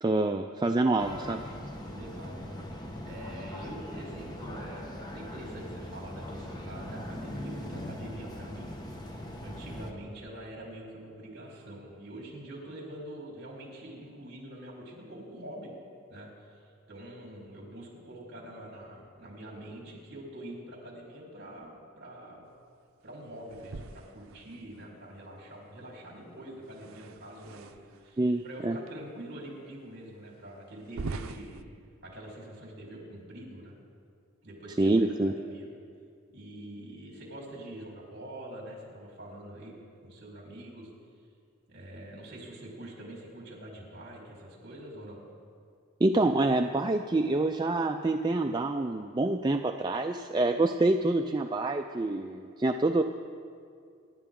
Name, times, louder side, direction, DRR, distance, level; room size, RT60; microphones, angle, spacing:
voice 1, 0.0-1.4 28.2-28.8 34.8-35.3 46.0-53.0, right 2 dB, 20° right, 4 dB, 0.4 m, -26 dB
sound 1, 1.0-9.9, left 1 dB, 20° left, 1.1 m, -40 dB
voice 2, 1.9-9.1 9.4-15.7 16.1-21.7 22.0-22.5 23.0-31.6 32.0-33.7 34.4-35.7 36.3-39.8 40.0-40.9 41.7-45.2 50.5-50.7, right 1 dB, 50° right, -3 dB, 4.1 m, -45 dB
sound 2, 23.5-24.9 26.6-28.1 28.9-29.0 29.6-29.7 30.8-31.6, right 3 dB, 75° right, 0.6 m, -42 dB
26.0 x 11.5 x 3.8 m, 2.3 s
head